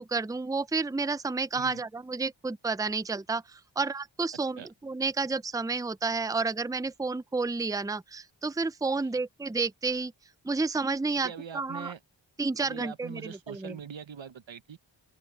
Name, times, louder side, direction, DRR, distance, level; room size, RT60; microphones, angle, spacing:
voice 1, 0.0-10.1 10.4-11.9 12.4-13.7, right 4 dB, 10° right, 0.6 m, -31 dB
voice 2, 11.1-12.0 12.6-14.8, right 8 dB, 75° right, 1.0 m, -42 dB
open air
wide cardioid pair, 45°, 46 cm